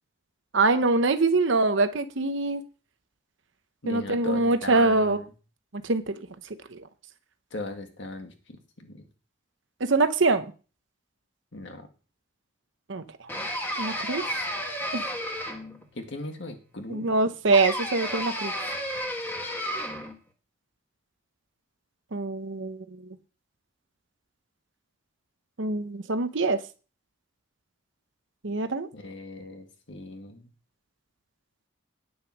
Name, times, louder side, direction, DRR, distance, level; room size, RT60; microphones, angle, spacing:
voice 1, 0.5-2.6 3.9-5.2 5.8-6.1 6.7-6.8 9.9-10.5 12.9-13.0 13.8-14.2 14.9-15.0 16.9-18.5 22.1-22.8 25.6-26.6 28.4-28.9, right 3 dB, 65° right, 10 dB, 0.9 m, -24 dB
voice 2, 3.8-5.2 7.5-9.1 11.5-11.9 15.9-17.1 28.9-30.5, left 2 dB, 60° left, 5 dB, 1.8 m, -38 dB
sound 1, 13.3-15.8 17.5-20.2, equal, 10° left, 1.6 m, -32 dB
9.8 x 6.2 x 6.2 m, 0.35 s
head